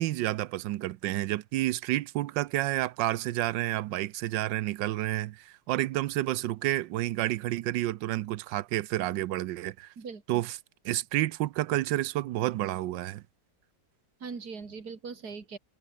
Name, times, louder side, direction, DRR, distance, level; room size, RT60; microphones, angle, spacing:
voice 1, 0.0-9.9 10.3-10.5 10.8-13.2, right 15 dB, 80° right, 1.3 m, -30 dB
voice 2, 10.0-10.4 14.2-15.6, right 5 dB, 55° right, 3.3 m, -40 dB
omnidirectional pair, 2.0 m